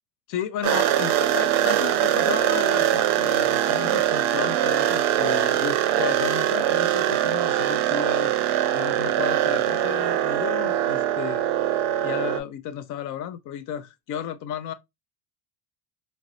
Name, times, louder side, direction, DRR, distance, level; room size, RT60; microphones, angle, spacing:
voice 1, 0.3-8.3 8.7-11.4 12.0-14.7, left 9 dB, 45° left, 0.5 m, -33 dB
sound 1, 0.6-12.4, right 11 dB, 75° right, 0.6 m, -22 dB
2.6 x 2.0 x 2.3 m
hypercardioid pair, 80°, 46 cm